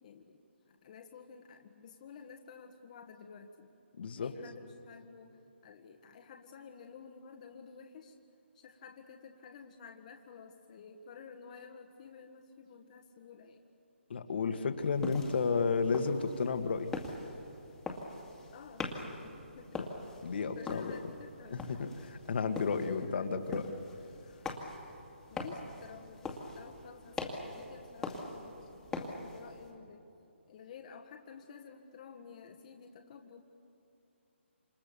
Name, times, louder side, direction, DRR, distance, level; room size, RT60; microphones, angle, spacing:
voice 1, 0.0-3.7 4.2-5.4 5.6-8.2 8.5-13.6 18.5-19.8 20.5-21.9 22.8-23.6 25.3-30.0 30.5-33.4, left 6 dB, 35° left, 3 dB, 1.6 m, -52 dB
voice 2, 4.0-4.3 14.1-16.9 20.2-20.9 21.5-21.9 22.3-23.7, left 5 dB, 55° left, 7 dB, 1.8 m, -32 dB
sound 1, 14.8-29.7, left 3 dB, 5° left, 2.2 m, -43 dB
27.5 x 27.0 x 7.0 m, 2.8 s
hypercardioid pair, 155°, 7 cm